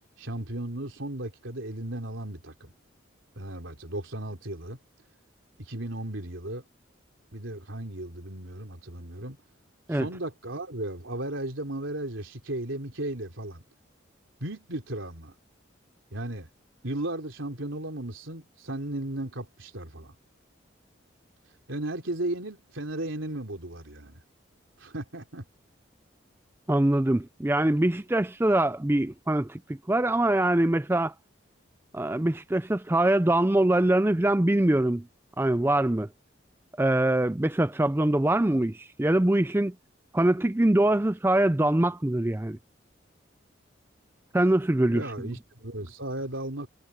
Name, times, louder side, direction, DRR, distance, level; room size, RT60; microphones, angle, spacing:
voice 1, 0.2-2.7 3.3-4.8 5.6-6.6 7.3-9.4 9.9-13.6 14.4-15.3 16.1-16.5 16.8-20.1 21.7-24.2 24.8-25.4 44.8-46.7, right 1 dB, 85° right, 3.5 m, -35 dB
voice 2, 26.7-29.6 29.9-31.1 31.9-35.1 35.4-36.1 36.8-39.7 40.1-42.6 44.3-45.0, right 1 dB, 10° right, 0.4 m, -23 dB
head